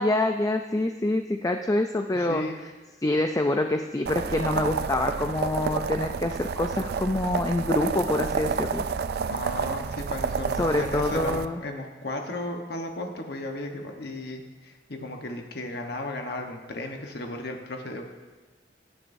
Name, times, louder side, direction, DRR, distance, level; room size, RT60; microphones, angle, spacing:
voice 1, 0.0-2.4 3.0-8.9 10.6-11.6, left 2 dB, 20° left, 5 dB, 0.4 m, -26 dB
voice 2, 2.1-2.6 9.3-18.0, left 2 dB, 60° left, 3 dB, 1.2 m, -35 dB
sound 1, 4.1-11.5, right 5 dB, 60° right, 0.4 m, -29 dB
18.0 x 9.9 x 2.7 m, 1.3 s
head